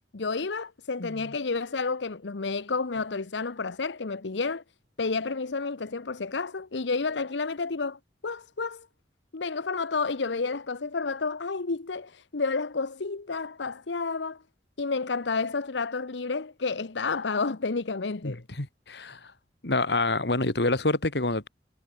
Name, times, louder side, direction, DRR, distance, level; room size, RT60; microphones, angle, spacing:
voice 1, 0.1-4.6 5.0-8.9 9.3-14.4 14.8-18.4, left 4 dB, 80° left, 0.9 m, -30 dB
voice 2, 1.0-1.3 18.2-19.3 19.6-21.5, left 2 dB, 65° left, 2.3 m, -27 dB
head